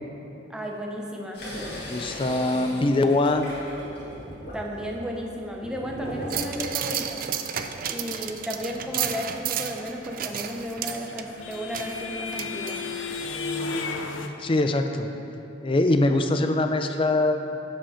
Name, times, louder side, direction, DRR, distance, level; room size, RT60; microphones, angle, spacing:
voice 1, 0.5-1.7 4.5-7.2 7.9-12.8, equal, 5° right, 0 dB, 0.7 m, -34 dB
sound 1, 1.3-6.7, equal, 55° left, 2.1 m, -38 dB
voice 2, 1.7-3.5 14.4-15.1 15.6-17.5, left 2 dB, 25° left, 7 dB, 0.4 m, -23 dB
sound 2, 6.3-13.2 13.6-13.7, right 8 dB, 45° right, 0.4 m, -32 dB
sound 3, 10.4-14.3, left 4 dB, 75° left, 0.5 m, -33 dB
11.5 x 5.2 x 5.0 m, 2.9 s
head